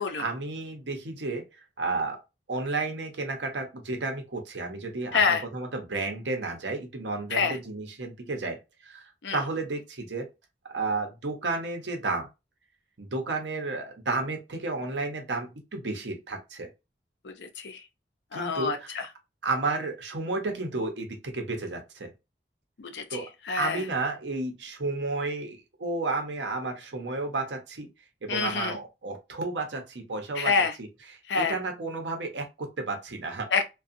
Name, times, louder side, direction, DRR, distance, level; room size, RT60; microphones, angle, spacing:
voice 1, 0.0-1.4 1.8-2.2 2.5-9.0 9.3-10.3 10.7-12.3 13.0-16.7 18.3-18.9 19.4-22.1 23.1-23.3 23.6-27.9 28.2-30.5 30.8-33.5, right 3 dB, 85° right, 0.8 m, -32 dB
voice 2, 5.1-5.4 7.3-7.6 9.2-9.4 17.2-17.8 18.3-19.0 22.8-23.2 23.5-23.8 28.3-28.8 30.4-30.7 31.3-31.5 33.5-33.7, left 5 dB, 80° left, 0.6 m, -27 dB
2.5 x 2.3 x 2.6 m
head